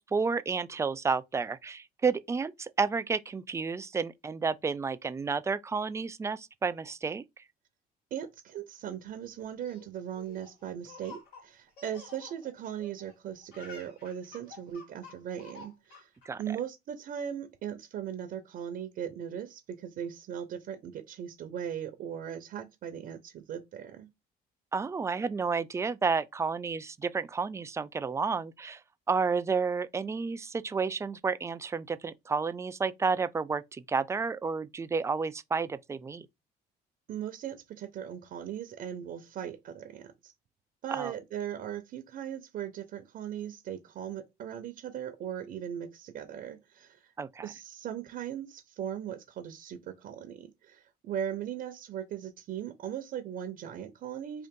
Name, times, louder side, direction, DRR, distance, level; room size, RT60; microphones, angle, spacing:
voice 1, 0.0-7.2 16.3-16.4 24.7-28.8 29.1-36.3 40.9-41.1 47.2-47.5, right 5 dB, 15° right, 0.3 m, -31 dB
voice 2, 8.1-16.1 16.4-24.1 37.1-40.3 40.8-47.1 47.4-54.5, right 9 dB, 60° right, 0.7 m, -38 dB
Laughter, 9.3-13.1 13.4-16.3, left 4 dB, 65° left, 2.4 m, -51 dB
3.7 x 2.6 x 3.6 m
cardioid pair, 110°, 17 cm